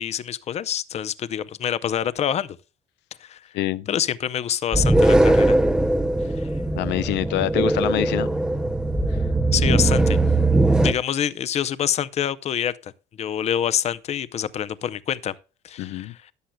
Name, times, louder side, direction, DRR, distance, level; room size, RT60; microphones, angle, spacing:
voice 1, 0.0-2.6 3.2-3.4 3.9-5.6 6.4-6.5 9.5-10.2 10.8-12.9 13.2-15.3 15.6-16.3, left 9 dB, 40° left, 0.6 m, -26 dB
voice 2, 3.5-3.9 6.8-8.3 9.1-9.2 15.8-16.1, left 15 dB, 85° left, 0.5 m, -25 dB
sound 1, 4.7-10.9, right 2 dB, 5° right, 0.5 m, -20 dB
13.5 x 10.0 x 2.2 m
cardioid pair, 140°, 17 cm